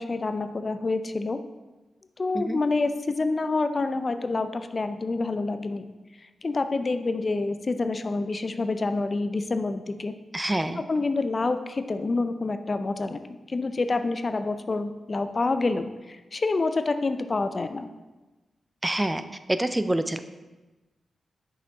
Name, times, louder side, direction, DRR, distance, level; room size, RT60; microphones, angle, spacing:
voice 1, 0.0-1.4 2.2-5.9 6.2-10.2 10.8-13.2 13.5-17.9, left 3 dB, 45° left, 10 dB, 0.4 m, -27 dB
voice 2, 10.3-10.8 18.8-19.2 19.5-20.2, right 1 dB, 20° right, 10 dB, 0.4 m, -26 dB
5.8 x 5.1 x 4.0 m, 1.1 s
supercardioid pair, 45°, 0 cm